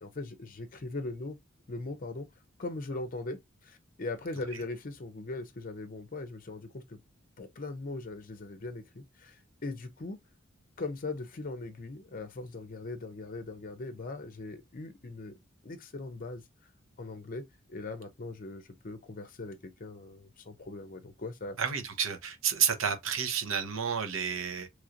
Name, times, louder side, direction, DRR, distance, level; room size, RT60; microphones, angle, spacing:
voice 1, 0.0-1.4 1.7-2.3 2.6-7.0 7.4-10.2 10.8-15.4 15.6-16.4 17.0-21.6, left 2 dB, 45° left, 0.6 m, -40 dB
voice 2, 21.6-24.7, right 7 dB, 85° right, 0.8 m, -30 dB
3.1 x 2.9 x 2.5 m
head